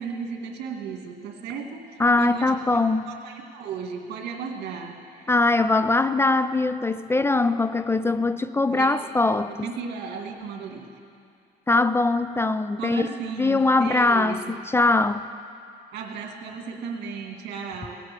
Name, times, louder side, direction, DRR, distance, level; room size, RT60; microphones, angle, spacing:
voice 1, 0.0-2.5 3.1-5.3 8.7-8.9 9.5-10.9 12.8-14.5 15.9-18.0, right 5 dB, 80° right, 2 dB, 2.1 m, -35 dB
voice 2, 2.0-3.1 5.3-9.7 11.7-13.1 13.4-15.3, left 3 dB, 15° left, 13 dB, 0.3 m, -22 dB
18.5 x 8.6 x 7.5 m, 2.5 s
cardioid pair, 110°, 17 cm